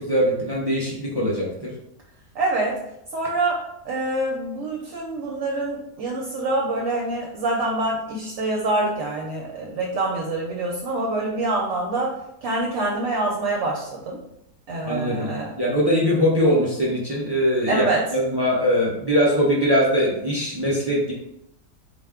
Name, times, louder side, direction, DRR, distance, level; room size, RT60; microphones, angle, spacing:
voice 1, 0.0-1.7 14.9-15.3 15.6-21.1, equal, 40° right, -5 dB, 0.3 m, -21 dB
voice 2, 2.3-2.8 3.1-12.2 12.4-14.2 14.7-15.5 17.7-18.1, right 2 dB, 60° right, -2 dB, 0.9 m, -25 dB
4.2 x 2.2 x 3.6 m, 0.81 s
omnidirectional pair, 1.5 m